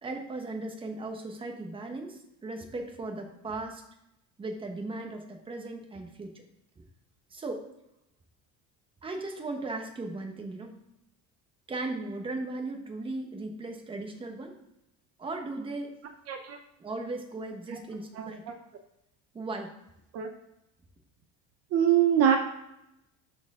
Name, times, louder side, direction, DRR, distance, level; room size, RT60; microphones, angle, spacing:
voice 1, 0.0-3.8 4.4-6.3 7.3-7.7 9.0-10.8 11.7-14.5 15.2-16.0 16.8-18.4 19.3-19.7, right 2 dB, 15° right, 3 dB, 1.1 m, -37 dB
voice 2, 16.3-16.6 17.7-17.8 18.1-18.3 20.1-20.3 21.7-22.4, right 9 dB, 45° right, 5 dB, 0.7 m, -23 dB
12.5 x 4.6 x 3.7 m, 0.84 s
cardioid pair, 170°, 33 cm